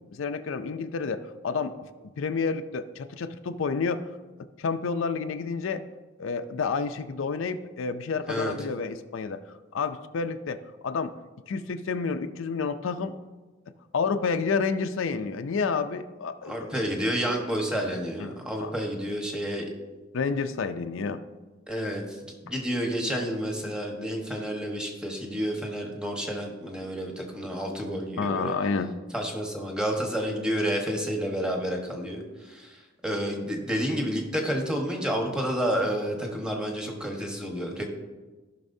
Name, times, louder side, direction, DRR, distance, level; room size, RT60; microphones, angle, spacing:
voice 1, 0.1-4.0 4.6-5.8 6.2-9.4 9.7-11.1 11.5-13.2 13.9-16.8 18.2-18.3 18.6-18.7 20.1-21.2 28.2-28.9, left 5 dB, 70° left, 9 dB, 0.4 m, -29 dB
voice 2, 16.4-19.7 21.7-28.5 29.1-37.8, equal, 5° right, 1 dB, 1.2 m, -30 dB
15.5 x 6.0 x 2.7 m, 1.3 s
head